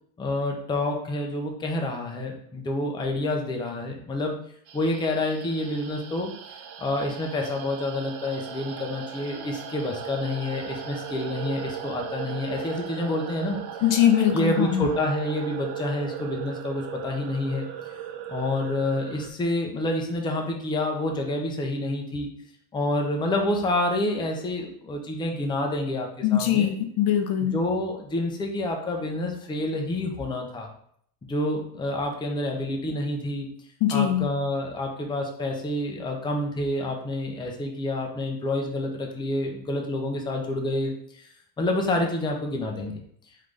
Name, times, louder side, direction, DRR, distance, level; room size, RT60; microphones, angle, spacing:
voice 1, 0.2-4.4 4.7-6.3 6.8-13.6 14.3-17.7 18.3-22.3 22.7-26.7 27.5-30.7 31.2-33.5 33.9-41.3 41.6-43.0, left 1 dB, 10° left, 1 dB, 0.6 m, -28 dB
sound 1, 4.7-19.3, right 8 dB, 60° right, 0.7 m, -38 dB
voice 2, 13.8-15.0 26.2-27.6 33.8-34.3, left 10 dB, 50° left, 6 dB, 0.6 m, -22 dB
3.8 x 3.7 x 3.3 m, 0.64 s
cardioid pair, 135°, 44 cm